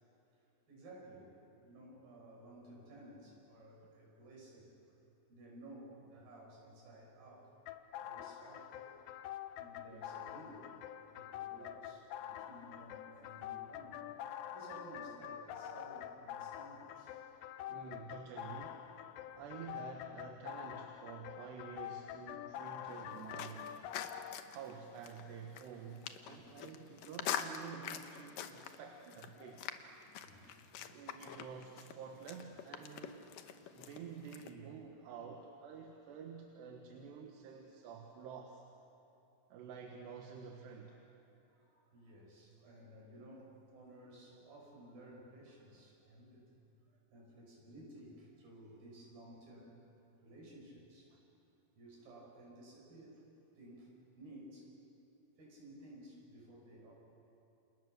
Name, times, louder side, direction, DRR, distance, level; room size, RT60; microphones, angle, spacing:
voice 1, 0.7-4.7 5.3-7.5 8.0-8.9 9.6-10.7 11.1-14.0 14.5-17.5 19.3-19.4 26.2-26.6 30.2-30.6 30.9-31.0 41.5-46.6 46.9-49.7 50.2-51.2 51.8-53.2 53.6-54.7 55.4-56.9, right 1 dB, 60° right, -2 dB, 7.9 m, -55 dB
sound 1, 7.7-24.4, left 11 dB, 85° left, 2.9 m, -46 dB
voice 2, 17.7-18.9 19.4-23.9 24.5-29.8 30.9-33.2 33.7-38.6 39.5-41.0, right 6 dB, 80° right, 1 dB, 3.6 m, -49 dB
sound 2, 22.9-34.5, left 9 dB, 70° left, 2.3 m, -46 dB
30.0 x 28.0 x 6.7 m, 2.8 s
omnidirectional pair, 4.8 m